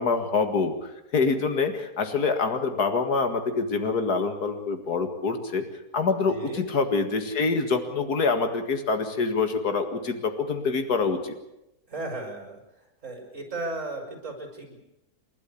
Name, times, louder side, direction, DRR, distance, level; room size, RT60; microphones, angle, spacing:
voice 1, 0.0-5.6 5.9-11.3, left 4 dB, 75° left, 7 dB, 2.5 m, -26 dB
voice 2, 6.3-6.7 11.9-12.6 13.0-14.8, right 2 dB, 50° right, 3 dB, 5.7 m, -35 dB
29.0 x 12.0 x 8.5 m, 0.88 s
omnidirectional pair, 1.7 m